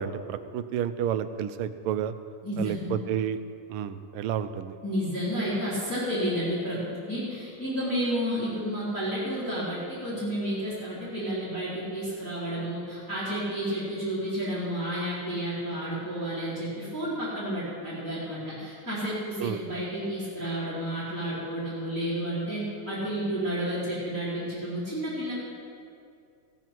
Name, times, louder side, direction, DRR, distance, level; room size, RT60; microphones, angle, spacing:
voice 1, 0.0-2.1 2.6-3.4 3.7-4.8 19.4-19.6, right 9 dB, 85° right, 11 dB, 1.6 m, -30 dB
voice 2, 2.4-2.9 4.8-25.3, equal, 10° left, -12 dB, 3.9 m, -31 dB
16.5 x 14.0 x 4.5 m, 2.4 s
omnidirectional pair, 2.4 m